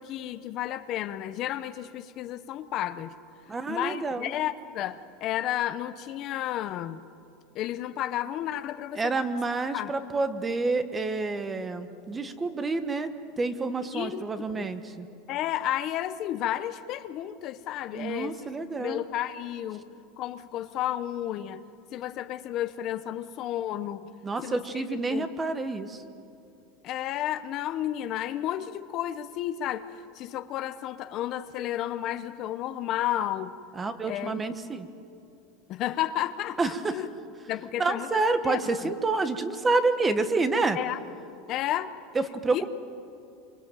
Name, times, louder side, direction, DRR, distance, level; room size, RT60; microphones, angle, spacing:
voice 1, 0.0-3.1 3.7-7.0 7.5-9.3 9.7-9.9 13.9-14.2 14.5-14.7 15.3-18.5 18.8-19.9 20.2-21.6 21.9-24.1 24.4-24.6 25.1-25.3 26.8-29.9 30.1-33.5 34.1-34.4 35.7-37.1 37.5-38.9 40.7-41.0 41.5-41.9 42.5-42.7, left 12 dB, 35° left, 11 dB, 0.8 m, -32 dB
voice 2, 3.5-4.3 9.0-15.1 17.9-19.0 24.2-26.0 33.8-34.9 36.6-37.0 37.8-40.8 42.1-42.7, right 3 dB, 15° right, 10 dB, 1.1 m, -28 dB
25.5 x 24.5 x 9.0 m, 2.6 s
supercardioid pair, 165°, 0 cm